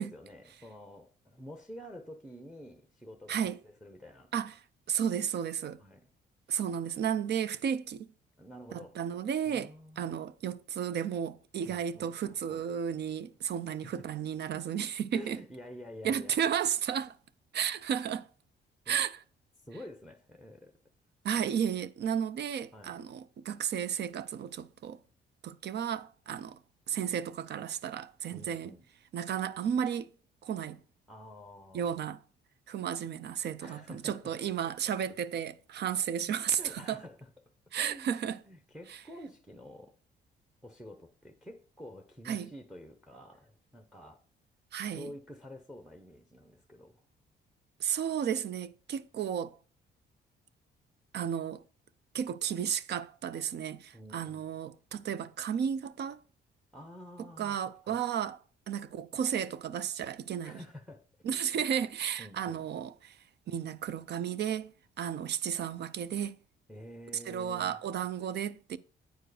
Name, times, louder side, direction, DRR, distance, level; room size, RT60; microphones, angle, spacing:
voice 1, 0.0-4.3 5.8-6.1 8.4-9.0 9.5-10.1 11.6-12.7 13.7-14.1 15.1-16.4 18.9-19.0 19.6-20.7 22.7-23.0 28.3-28.9 31.1-32.0 33.6-34.3 34.6-35.2 36.1-37.3 37.8-40.0 40.6-44.2 44.9-47.0 53.9-54.5 56.7-57.6 57.8-58.0 60.4-61.0 61.6-61.9 62.2-62.7 66.7-67.8, equal, ahead, 0.7 m, -49 dB
voice 2, 3.3-3.6 4.3-4.6 4.9-5.8 6.5-8.1 8.7-9.7 10.0-15.4 16.0-17.1 17.5-18.3 18.9-19.2 21.2-25.0 25.4-26.6 26.9-28.7 29.1-30.1 30.4-30.8 31.7-32.2 32.7-37.0 37.7-38.4 38.9-39.0 42.3-42.5 44.7-45.1 47.8-49.6 51.1-51.6 52.1-56.2 57.4-58.4 58.7-60.6 61.2-63.2 63.5-66.4 67.3-68.8, right 8 dB, 60° right, 0.5 m, -33 dB
9.1 x 4.6 x 4.9 m
cardioid pair, 90°, 20 cm